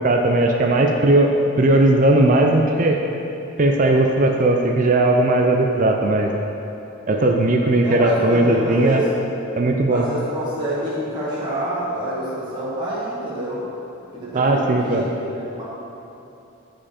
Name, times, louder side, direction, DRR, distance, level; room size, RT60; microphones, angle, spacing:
voice 1, 0.0-3.0 3.6-6.3 7.1-9.0 9.6-10.0 14.3-15.0, right 2 dB, 40° right, 2 dB, 0.4 m, -17 dB
voice 2, 7.8-9.1 9.9-13.7 14.1-15.6, right 1 dB, 20° right, -8 dB, 1.3 m, -27 dB
8.9 x 5.1 x 4.3 m, 2.9 s
head